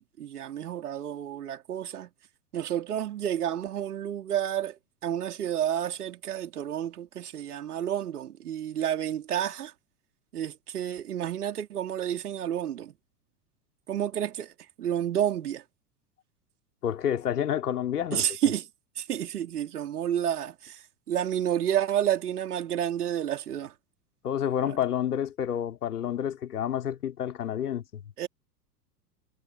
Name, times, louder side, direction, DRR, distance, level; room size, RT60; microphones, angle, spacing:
voice 1, 0.0-2.1 2.5-9.7 10.3-13.0 13.9-15.6 18.1-18.7 19.0-23.7 24.6-24.7 28.2-28.3, right 10 dB, 65° right, 4.1 m, -30 dB
voice 2, 16.8-18.3 24.2-28.0, left 9 dB, 65° left, 3.8 m, -29 dB
figure-of-eight pair, 90°, 50 cm